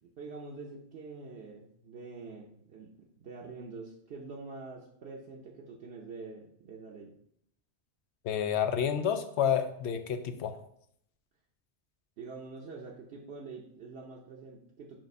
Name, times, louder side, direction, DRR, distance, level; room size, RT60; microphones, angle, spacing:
voice 1, 0.0-7.1 12.2-15.0, right 4 dB, 75° right, -2 dB, 1.1 m, -45 dB
voice 2, 8.2-10.5, left 8 dB, 80° left, 9 dB, 0.9 m, -29 dB
7.4 x 2.5 x 5.3 m, 0.69 s
omnidirectional pair, 1.1 m